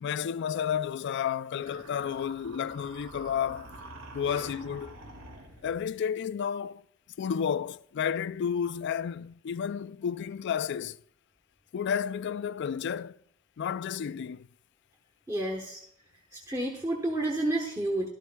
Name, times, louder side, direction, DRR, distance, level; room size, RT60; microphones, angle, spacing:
voice 1, 0.0-3.7 4.1-5.0 5.6-6.8 7.2-11.0 11.7-13.2 13.6-14.5, left 8 dB, 55° left, 0.3 m, -31 dB
sound 1, 1.6-5.9, right 1 dB, 70° right, 2.0 m, -47 dB
voice 2, 15.3-15.8 16.5-18.1, right 1 dB, 15° right, 1.1 m, -30 dB
12.5 x 12.0 x 2.2 m
head